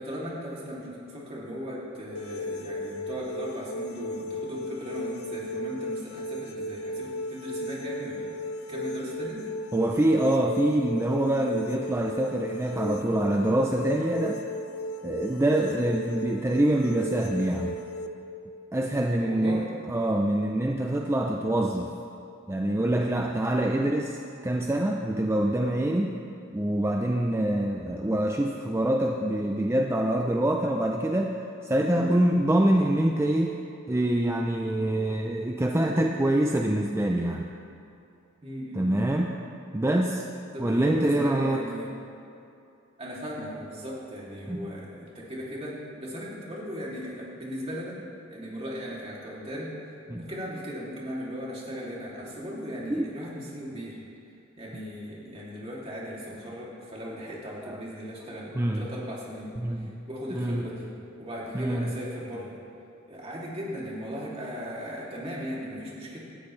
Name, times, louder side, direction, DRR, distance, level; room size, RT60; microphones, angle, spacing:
voice 1, 0.0-8.3 8.7-9.4 15.7-16.0 19.2-19.7 31.9-32.1 38.4-39.0 40.5-41.9 43.0-48.0 48.3-49.7 50.2-54.0 54.6-59.5 59.8-60.9 61.2-62.6 63.1-66.2, equal, 30° right, -5 dB, 2.7 m, -37 dB
sound 1, 2.1-18.1, left 1 dB, 85° left, 0.7 m, -36 dB
voice 2, 9.7-14.4 15.0-17.8 18.7-19.6 19.9-21.9 22.5-26.1 26.5-31.3 31.6-33.6 33.9-37.5 38.7-39.3 39.7-40.2 40.6-41.6 44.5-44.7 50.1-50.2 52.9-53.0 57.6-57.8 58.6-58.8 59.6-60.0 60.3-60.7 61.5-62.0, right 1 dB, 10° right, 2 dB, 0.5 m, -25 dB
18.0 x 13.0 x 3.2 m, 2.6 s
head